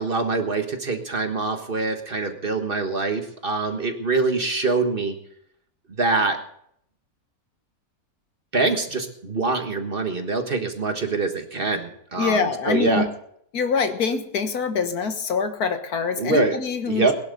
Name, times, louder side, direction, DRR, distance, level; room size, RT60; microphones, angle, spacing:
voice 1, 0.0-5.2 6.0-6.4 8.5-13.1 16.2-16.6 16.9-17.1, right 3 dB, 35° right, 6 dB, 1.6 m, -24 dB
voice 2, 12.2-13.1 13.5-17.1, left 5 dB, 75° left, 8 dB, 1.8 m, -24 dB
21.0 x 11.5 x 4.0 m, 0.68 s
omnidirectional pair, 1.6 m